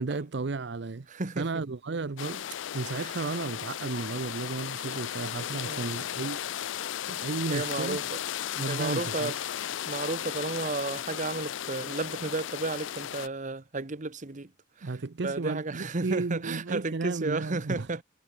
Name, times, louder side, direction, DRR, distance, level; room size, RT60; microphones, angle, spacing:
voice 1, 0.0-1.1 1.4-2.4 2.7-8.0 8.6-9.3 14.8-17.9, right 3 dB, 65° right, 0.7 m, -34 dB
voice 2, 1.1-1.5 2.9-3.1 4.8-5.0 5.5-5.9 7.5-8.2 8.7-9.4 9.9-14.5 14.8-14.9 15.2-18.0, right 3 dB, 45° right, 1.1 m, -33 dB
sound 1, 2.2-13.3, left 10 dB, 90° left, 0.5 m, -35 dB
head